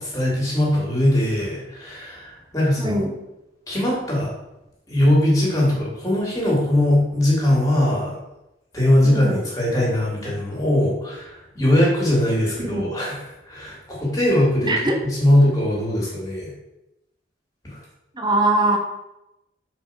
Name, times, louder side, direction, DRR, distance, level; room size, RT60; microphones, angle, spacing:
voice 1, 0.0-3.0 3.7-4.3 4.9-8.1 8.7-14.7 15.2-16.5 17.6-17.8, left 1 dB, 20° left, -4 dB, 2.9 m, -20 dB
voice 2, 2.8-3.2 9.0-9.5 12.6-13.0 14.6-15.0 18.1-18.8, right 2 dB, 25° right, 2 dB, 1.2 m, -22 dB
5.6 x 4.8 x 6.0 m, 0.91 s
head